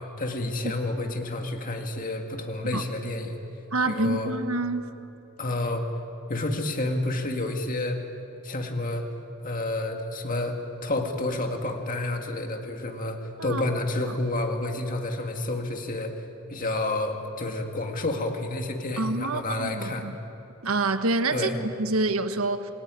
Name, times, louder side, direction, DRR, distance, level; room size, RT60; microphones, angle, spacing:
voice 1, 0.0-3.4 3.9-4.3 5.4-5.9 6.3-8.0 8.4-9.1 9.4-10.6 10.8-16.2 16.5-20.0 21.3-21.6, left 2 dB, 40° left, 3 dB, 2.0 m, -29 dB
voice 2, 3.7-4.9 13.4-13.6 14.1-14.2 19.0-20.1 20.6-22.7, right 2 dB, 75° right, 8 dB, 1.4 m, -27 dB
28.0 x 19.0 x 9.6 m, 2.9 s
head